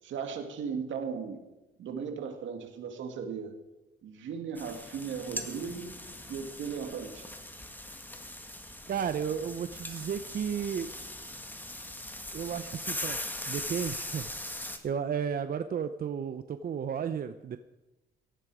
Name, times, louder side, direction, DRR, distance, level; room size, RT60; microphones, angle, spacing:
voice 1, 0.0-1.4 1.8-3.6 4.0-6.0 6.3-7.3, right 6 dB, 75° right, 5 dB, 2.3 m, -37 dB
sound 1, 4.6-14.8, left 1 dB, 10° left, 1.8 m, -40 dB
voice 2, 8.9-10.9 12.3-13.2 13.5-14.3 14.8-17.6, right 7 dB, 50° right, 10 dB, 0.7 m, -33 dB
17.0 x 13.5 x 5.0 m, 1.0 s
cardioid pair, 90°, 20 cm